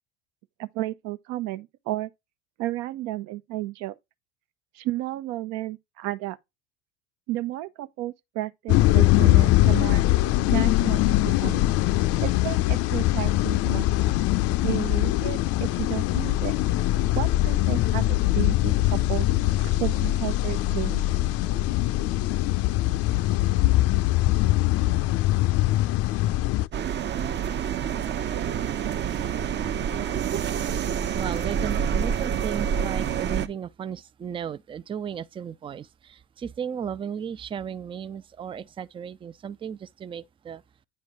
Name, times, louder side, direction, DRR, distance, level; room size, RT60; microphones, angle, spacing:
voice 1, 0.6-2.1 2.6-4.0 4.7-6.4 7.3-10.0 10.5-11.6 12.2-14.1 14.6-16.6 17.1-19.3 19.6-21.1, right 16 dB, 65° right, 0.9 m, -32 dB
sound 1, 8.7-26.7, left 16 dB, 55° left, 0.6 m, -22 dB
sound 2, 26.7-33.5, right 8 dB, 35° right, 0.8 m, -27 dB
voice 2, 31.1-40.6, right 8 dB, 20° right, 0.4 m, -35 dB
9.4 x 3.2 x 5.4 m
hypercardioid pair, 90°, 29 cm